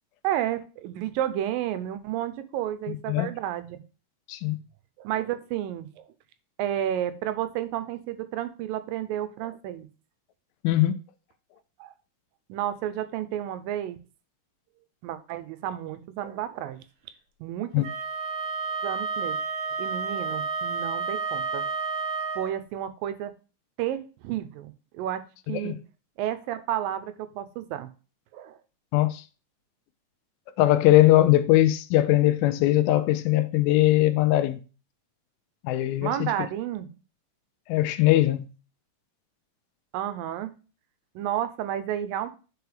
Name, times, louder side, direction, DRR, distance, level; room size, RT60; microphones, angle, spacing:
voice 1, 0.2-3.8 5.0-6.1 6.6-9.9 11.8-11.9 12.5-14.0 15.0-16.8 17.4-17.9 18.8-19.4 19.8-21.7 22.4-23.3 23.8-25.7 26.2-27.9 28.3-28.6 36.0-36.9 39.9-40.5 41.2-42.3, right 11 dB, 80° right, 2.4 m, -31 dB
voice 2, 10.6-11.0 17.7-17.9 25.5-25.8 28.9-29.2 30.6-34.6 35.6-36.3 37.7-38.5, left 15 dB, 90° left, 2.5 m, -21 dB
Wind instrument woodwind instrument, 17.8-22.5, right 4 dB, 65° right, 1.9 m, -30 dB
9.5 x 4.6 x 3.4 m
omnidirectional pair, 4.1 m